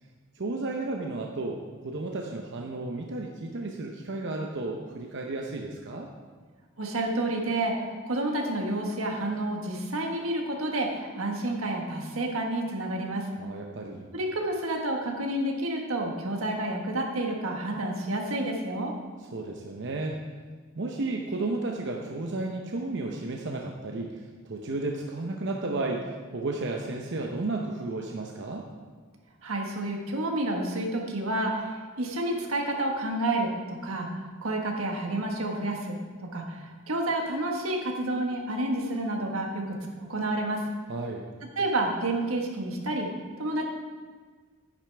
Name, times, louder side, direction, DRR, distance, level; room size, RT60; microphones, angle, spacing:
voice 1, 0.4-1.6 1.8-6.1 13.4-14.1 19.3-20.2 20.8-28.6 40.9-41.2, right 2 dB, 60° right, 1 dB, 0.8 m, -33 dB
voice 2, 6.8-7.7 8.0-13.2 14.1-18.9 29.4-33.5 33.8-34.1 34.4-36.0 36.3-40.6 41.6-43.1 43.4-43.7, right 1 dB, 90° right, 1 dB, 1.5 m, -29 dB
10.5 x 10.0 x 3.4 m, 1.5 s
head